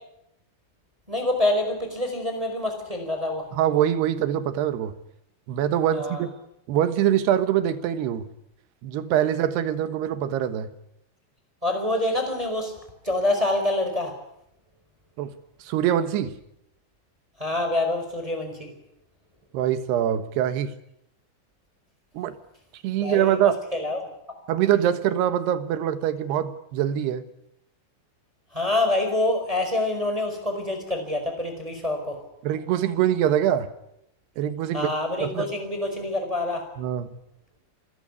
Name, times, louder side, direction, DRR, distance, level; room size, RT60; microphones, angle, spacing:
voice 1, 1.1-3.5 5.9-6.3 11.6-12.8 13.0-14.2 17.4-18.7 23.0-24.1 28.5-32.2 34.7-36.7, left 2 dB, 5° right, 5 dB, 4.3 m, -26 dB
voice 2, 3.5-5.0 5.5-6.3 6.7-8.3 8.8-10.7 15.2-15.3 15.6-16.3 19.5-20.7 22.1-22.4 22.7-23.6 24.5-27.2 32.4-33.7 34.4-34.9 35.2-35.5 36.8-37.1, right 10 dB, 70° right, 11 dB, 3.0 m, -24 dB
27.5 x 16.0 x 9.8 m, 0.80 s
omnidirectional pair, 5.7 m